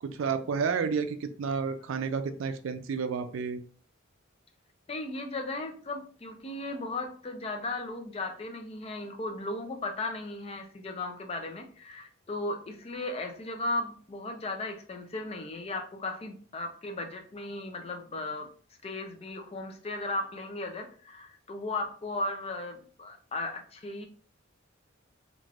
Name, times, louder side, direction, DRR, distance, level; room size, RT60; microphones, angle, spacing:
voice 1, 0.0-3.6, right 5 dB, 70° right, 10 dB, 0.4 m, -31 dB
voice 2, 4.9-18.5 18.8-24.1, left 2 dB, 30° left, 4 dB, 0.5 m, -36 dB
3.3 x 2.5 x 2.4 m, 0.43 s
head